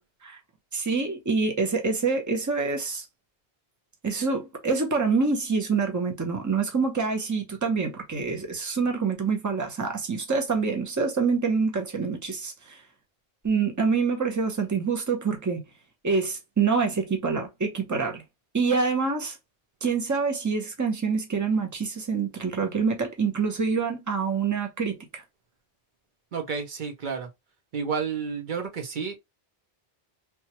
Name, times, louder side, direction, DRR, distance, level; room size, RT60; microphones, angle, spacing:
voice 1, 0.7-3.0 4.0-12.8 13.4-15.6 16.0-18.2 18.5-19.4 19.8-25.2, right 5 dB, 20° right, 0.6 m, -26 dB
voice 2, 26.3-27.3 27.7-29.1, right 6 dB, 55° right, 0.8 m, -30 dB
3.0 x 2.3 x 2.8 m
omnidirectional pair, 1.1 m